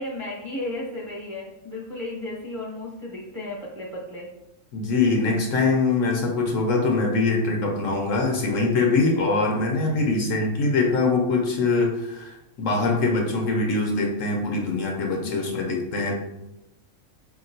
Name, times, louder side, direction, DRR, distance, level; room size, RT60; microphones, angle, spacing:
voice 1, 0.0-4.3 8.5-8.7 9.5-9.6 9.9-10.0 15.2-15.7, left 1 dB, 15° right, -5 dB, 0.8 m, -34 dB
voice 2, 4.7-16.1, left 3 dB, 65° left, 0 dB, 1.0 m, -23 dB
4.9 x 2.9 x 2.6 m, 0.91 s
omnidirectional pair, 1.5 m